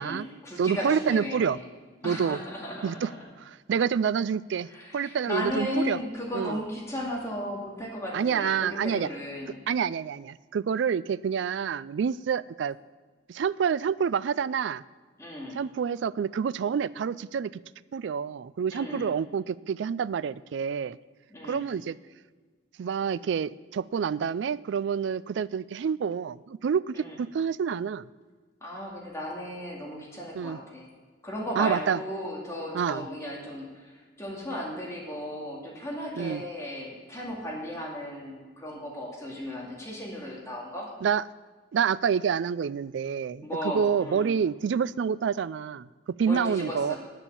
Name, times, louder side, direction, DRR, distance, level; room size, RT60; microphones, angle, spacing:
voice 1, 0.0-1.6 2.0-3.3 4.7-9.6 15.2-15.6 18.7-19.1 21.3-21.6 26.9-27.2 28.6-30.9 31.2-40.9 43.4-44.3 46.2-47.0, left 1 dB, 15° left, -4 dB, 2.3 m, -35 dB
voice 2, 0.6-1.6 2.0-2.4 2.8-3.1 3.7-6.0 6.3-6.6 8.1-9.1 9.7-12.8 13.3-14.8 15.5-17.6 17.9-21.0 21.4-22.0 22.8-28.1 30.4-30.6 31.6-32.0 32.7-33.0 36.2-36.4 41.0-41.2 41.7-43.5 43.7-46.9, right 7 dB, 70° right, 19 dB, 0.3 m, -28 dB
9.8 x 9.1 x 6.9 m, 1.4 s
head